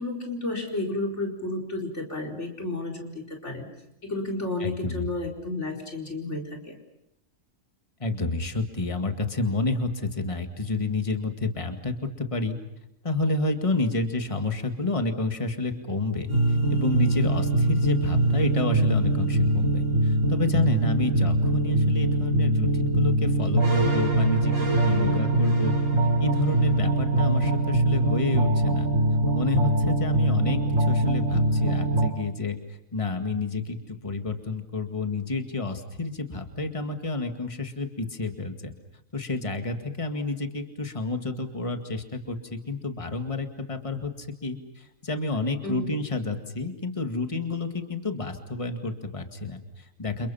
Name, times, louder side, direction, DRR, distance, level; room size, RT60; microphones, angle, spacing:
voice 1, 0.0-3.7 4.0-6.7 25.0-25.2 45.6-46.0, left 2 dB, 60° left, 1 dB, 4.9 m, -32 dB
voice 2, 4.6-5.0 8.0-12.6 13.0-25.8 26.2-28.9 29.3-32.6 32.9-33.8 34.0-38.7 39.1-50.3, left 3 dB, 25° left, 6 dB, 2.1 m, -30 dB
sound 1, 16.3-32.1, right 2 dB, 70° right, 4.2 m, -23 dB
29.5 x 28.5 x 5.8 m, 0.85 s
omnidirectional pair, 1.4 m